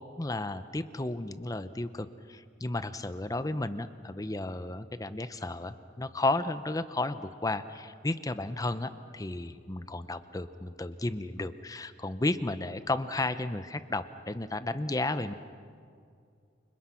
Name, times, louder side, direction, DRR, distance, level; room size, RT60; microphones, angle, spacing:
voice 1, 0.2-15.3, left 2 dB, 20° left, 12 dB, 0.7 m, -33 dB
29.0 x 25.5 x 5.8 m, 2.3 s
head